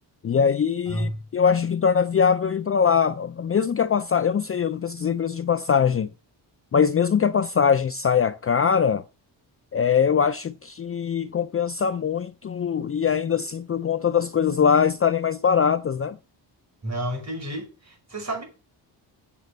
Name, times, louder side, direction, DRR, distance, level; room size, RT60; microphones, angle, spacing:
voice 1, 0.2-6.1 6.7-9.0 9.7-16.2, left 7 dB, 30° left, 0.5 m, -22 dB
voice 2, 16.8-18.4, right 1 dB, 35° right, 5.9 m, -30 dB
8.5 x 6.9 x 6.7 m
cardioid pair, 90°, 44 cm